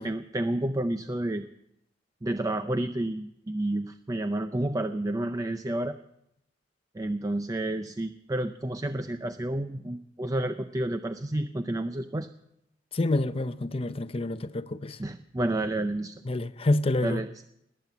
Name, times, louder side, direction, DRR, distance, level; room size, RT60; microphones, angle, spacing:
voice 1, 0.0-1.5 2.2-6.0 6.9-12.3 15.0-16.1 17.0-17.4, right 1 dB, 20° right, 0.5 m, -30 dB
voice 2, 12.9-15.0 16.2-17.3, left 2 dB, 35° left, 0.6 m, -28 dB
20.0 x 9.0 x 7.1 m
head